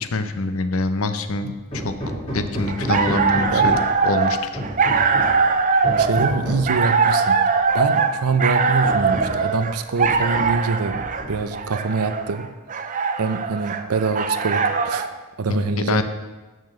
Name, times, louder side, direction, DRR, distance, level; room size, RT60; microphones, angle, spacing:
voice 1, 0.0-1.9 2.3-3.8 4.0-4.4 15.5-16.0, left 3 dB, 70° left, 10 dB, 0.7 m, -24 dB
Hammer, 1.7-4.0 4.5-5.4 5.8-6.8 7.8-7.9 8.3-8.4 8.8-9.5 10.0-10.6 10.9-11.6, equal, 30° left, 2.4 m, -30 dB
sound 1, 2.7-15.1, right 5 dB, 35° right, 0.5 m, -21 dB
voice 2, 5.9-7.5 7.7-12.5 13.2-15.1 15.4-16.0, right 4 dB, 85° right, 10 dB, 0.6 m, -24 dB
6.8 x 6.3 x 6.5 m, 1.2 s
head